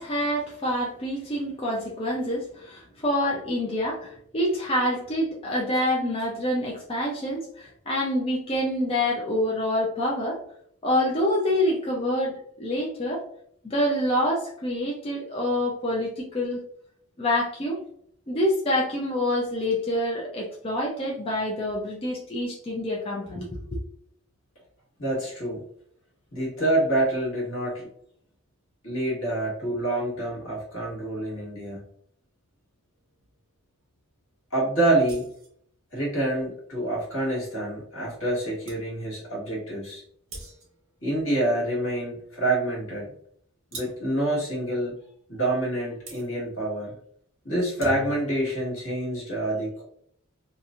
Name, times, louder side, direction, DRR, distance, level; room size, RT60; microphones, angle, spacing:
voice 1, 0.0-10.4 10.8-13.2 13.6-16.6 17.2-17.8 18.3-23.8, left 1 dB, 25° left, -3 dB, 0.4 m, -27 dB
voice 2, 25.0-25.6 26.3-27.9 28.8-31.8 34.5-35.3 35.9-40.0 41.0-43.1 43.7-44.9 45.3-47.0 47.4-49.8, right 1 dB, 80° left, -4 dB, 1.4 m, -27 dB
sound 1, 35.0-35.6 38.3-38.4 38.7-38.9 40.3-40.9 43.7-44.1 46.1-46.3 47.6-48.4, right 1 dB, 70° right, 0.9 m, -41 dB
2.8 x 2.5 x 2.4 m, 0.66 s
head